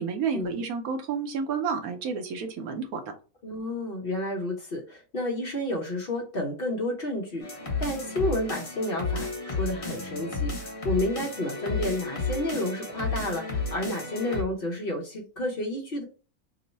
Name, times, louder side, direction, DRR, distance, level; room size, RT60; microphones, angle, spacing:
voice 1, 0.0-3.0, right 5 dB, 80° right, 5 dB, 1.2 m, -30 dB
voice 2, 3.4-7.5 7.8-16.0, left 1 dB, 45° left, 1 dB, 0.9 m, -31 dB
sound 1, 7.4-14.4, left 3 dB, 30° left, 0.8 m, -32 dB
3.0 x 2.0 x 4.0 m, 0.34 s
omnidirectional pair, 1.5 m